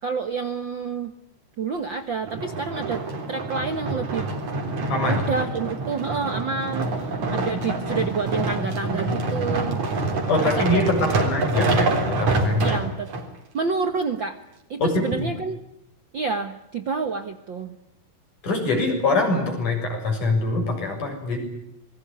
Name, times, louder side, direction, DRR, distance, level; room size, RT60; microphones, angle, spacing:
voice 1, 0.0-1.1 1.6-3.0 3.3-4.3 5.0-9.8 10.4-10.8 12.6-13.1 13.5-14.4 14.7-15.6 16.1-17.7, right 5 dB, 85° right, 8 dB, 1.0 m, -28 dB
sound 1, 2.3-13.3 13.9-14.0, right 2 dB, 50° right, 5.0 m, -26 dB
voice 2, 4.9-5.2 10.3-12.8 14.8-14.9 15.2-15.3 18.4-21.4, left 2 dB, 50° left, 4 dB, 8.5 m, -23 dB
27.5 x 22.0 x 9.7 m, 0.79 s
omnidirectional pair, 4.5 m